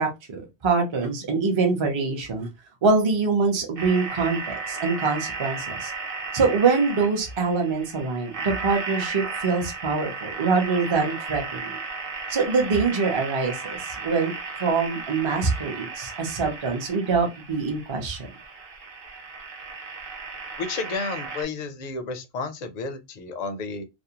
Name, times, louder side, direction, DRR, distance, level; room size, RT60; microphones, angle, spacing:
voice 1, 0.0-2.5 2.8-5.9 6.3-11.8 12.3-14.3 14.6-18.2, right 4 dB, 35° right, 0.5 m, -24 dB
sound 1, 3.8-21.4, right 4 dB, 65° right, 0.9 m, -35 dB
voice 2, 20.6-23.8, left 4 dB, 55° left, 0.5 m, -31 dB
2.4 x 2.1 x 2.8 m
omnidirectional pair, 1.1 m